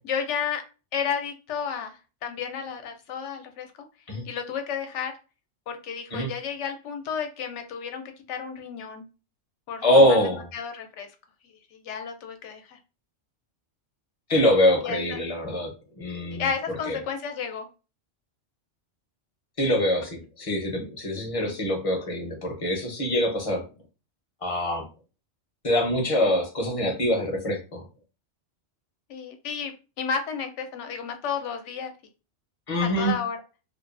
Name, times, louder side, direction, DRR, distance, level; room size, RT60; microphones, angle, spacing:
voice 1, 0.0-0.6 0.9-3.7 4.3-5.1 5.7-9.0 9.7-11.1 11.5-12.8 14.8-15.2 16.3-17.7 21.4-21.6 29.1-31.9 32.8-33.4, left 6 dB, 80° left, 6 dB, 0.9 m, -32 dB
voice 2, 9.8-10.5 14.3-15.7 16.0-16.5 16.9-17.0 19.6-23.6 24.4-24.9 25.6-27.8 32.7-33.2, left 1 dB, 35° left, 1 dB, 0.6 m, -24 dB
2.5 x 2.3 x 2.4 m, 0.32 s
omnidirectional pair, 1.2 m